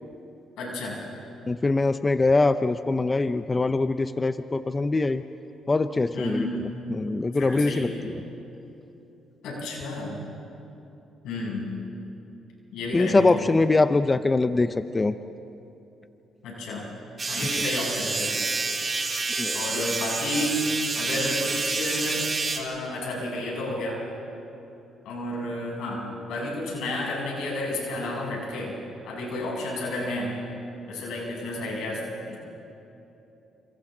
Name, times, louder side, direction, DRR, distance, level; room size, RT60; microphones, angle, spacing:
voice 1, 0.6-1.0 6.1-6.6 7.3-8.1 9.4-10.2 11.2-11.8 12.7-13.5 16.4-16.8 17.3-18.3 19.5-22.3 22.6-24.0 25.1-28.7 29.0-30.4 30.9-32.0 32.3-32.4, left 1 dB, 90° left, -3 dB, 7.1 m, -31 dB
voice 2, 1.5-5.2 5.7-8.2 12.9-15.2 19.4-19.8, left 3 dB, 25° left, 11 dB, 0.6 m, -23 dB
sound 1, 17.2-22.6, right 3 dB, 30° right, 3.3 m, -28 dB
29.0 x 28.0 x 3.9 m, 3.0 s
cardioid pair, 90°, 0 cm